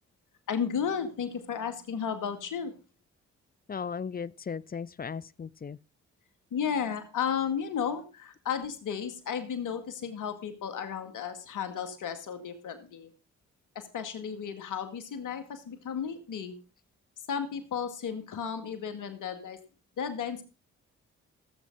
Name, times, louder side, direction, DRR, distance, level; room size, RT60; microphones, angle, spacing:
voice 1, 0.5-2.7 6.5-13.1 13.8-16.5 17.3-19.6 20.0-20.4, left 7 dB, 70° left, 2.0 m, -33 dB
voice 2, 3.7-5.8, left 6 dB, 30° left, 0.6 m, -36 dB
14.0 x 7.6 x 5.3 m
supercardioid pair, 45°, 32 cm